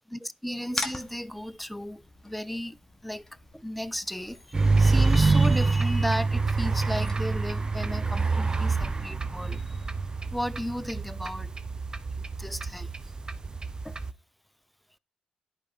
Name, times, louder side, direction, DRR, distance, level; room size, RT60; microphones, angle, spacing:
voice 1, 0.1-2.8 3.0-3.2 3.5-9.8 10.3-11.5 12.4-12.9 13.8-14.0, equal, ahead, 0.5 m, -34 dB
sound 1, 0.7-7.7, left 2 dB, 20° left, 1.7 m, -43 dB
sound 2, 4.5-14.1, right 3 dB, 30° right, 1.0 m, -26 dB
10.5 x 4.9 x 4.1 m
hypercardioid pair, 50°, 3 cm